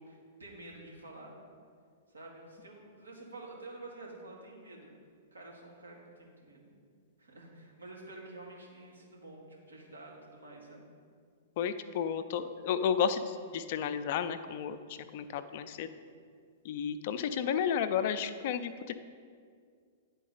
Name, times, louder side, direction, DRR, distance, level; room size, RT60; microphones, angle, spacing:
voice 1, 0.0-1.4 2.1-4.9 5.3-6.7 7.2-10.8, right 2 dB, 85° right, -3 dB, 1.5 m, -49 dB
voice 2, 11.6-15.9 16.6-18.9, left 7 dB, 50° left, 11 dB, 0.4 m, -32 dB
9.7 x 3.9 x 3.9 m, 2.1 s
figure-of-eight pair, 105°, 0 cm